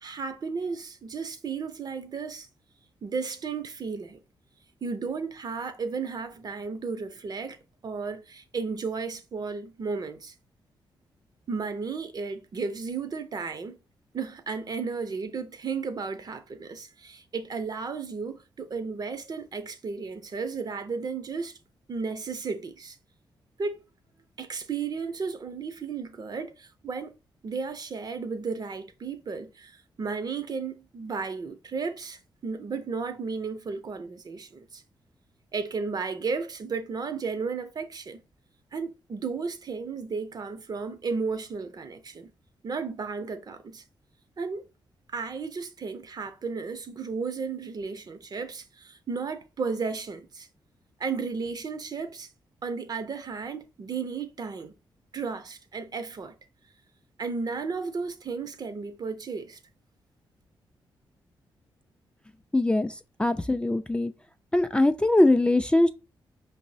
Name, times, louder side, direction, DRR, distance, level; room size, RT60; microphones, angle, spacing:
voice 1, 0.0-2.5 3.0-4.2 4.8-7.6 7.8-10.3 11.5-13.8 14.1-21.6 21.9-23.0 23.6-23.8 24.4-27.1 27.4-34.8 35.5-38.2 38.7-42.3 42.6-43.8 44.4-44.7 45.1-50.5 51.0-52.3 52.6-54.7 55.1-56.3 57.2-59.6, right 5 dB, 45° right, 0.5 m, -34 dB
voice 2, 62.5-62.9 63.2-64.1 64.5-65.9, left 1 dB, 10° left, 0.3 m, -22 dB
5.3 x 2.0 x 2.6 m
cardioid pair, 65°, 9 cm